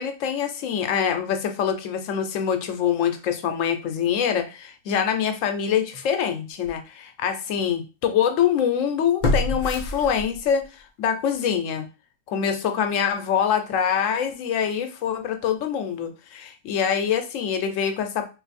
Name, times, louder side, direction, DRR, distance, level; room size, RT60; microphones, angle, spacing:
voice 1, 0.0-11.9 12.3-18.2, left 8 dB, 80° left, 7 dB, 0.9 m, -25 dB
sound 1, 5.9-6.1 6.6-6.7 9.2-10.7 11.0-11.1, left 2 dB, 50° left, 0.6 m, -26 dB
2.5 x 2.5 x 4.1 m, 0.30 s
omnidirectional pair, 1.3 m